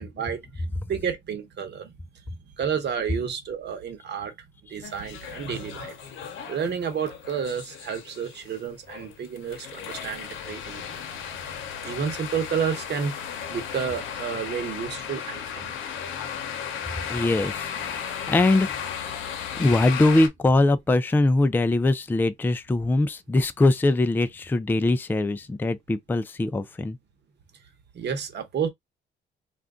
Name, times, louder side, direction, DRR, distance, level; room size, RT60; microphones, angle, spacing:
voice 1, 0.0-1.9 2.6-6.0 6.5-10.9 11.8-15.7 27.9-28.7, right 7 dB, 60° right, 1.1 m, -31 dB
sound 1, 4.8-20.3, left 8 dB, 80° left, 0.7 m, -35 dB
voice 2, 17.1-18.0 18.3-18.7 19.5-27.0, left 2 dB, 10° left, 0.3 m, -22 dB
2.5 x 2.2 x 3.6 m
cardioid pair, 90°, 20 cm